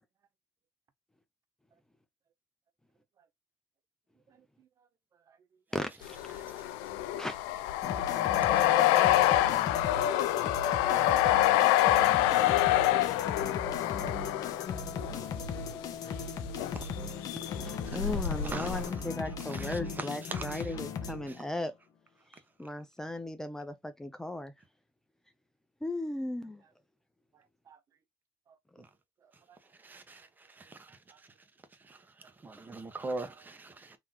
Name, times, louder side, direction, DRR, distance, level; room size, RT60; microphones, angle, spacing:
voice 1, 4.3-5.4 6.4-6.6 10.6-11.1 12.9-13.2 15.9-16.1 27.3-27.8 28.5-28.6 29.2-29.6 29.9-30.3 30.6-31.2 31.9-32.3 33.2-33.5, right 7 dB, 45° right, 0.7 m, -62 dB
voice 2, 5.7-6.2 7.2-7.4 17.5-21.7 22.3-24.5 25.8-26.6, left 1 dB, 5° left, 0.6 m, -37 dB
sound 1, 6.0-15.5 16.5-17.0 17.2-18.9, left 13 dB, 90° left, 0.4 m, -27 dB
sound 2, 7.8-21.4, left 5 dB, 55° left, 1.1 m, -38 dB
voice 3, 8.5-9.0 16.7-16.9 18.4-18.7 19.5-20.7 28.8-28.9 29.8-30.3 30.6-30.9 31.9-32.0 32.4-34.0, right 3 dB, 25° right, 1.1 m, -41 dB
4.0 x 3.0 x 2.9 m
supercardioid pair, 95°, 8 cm